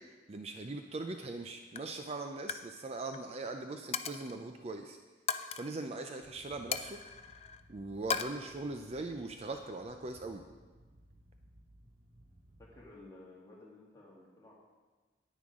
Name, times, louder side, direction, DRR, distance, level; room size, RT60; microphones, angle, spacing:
voice 1, 0.0-5.0 5.5-7.0 7.7-10.4, right 2 dB, 35° right, 5 dB, 0.4 m, -41 dB
Coin (dropping), 1.2-1.4 1.7-2.0 2.3-2.7 3.0-3.2 3.9-4.4 5.3-5.6 6.7-7.6 8.1-8.2, left 7 dB, 35° left, 0.4 m, -37 dB
sound 1, 6.2-12.9, right 1 dB, 50° right, 1.0 m, -60 dB
voice 2, 12.6-14.5, left 2 dB, 20° left, -5 dB, 2.1 m, -54 dB
10.0 x 9.2 x 3.6 m, 1.3 s
head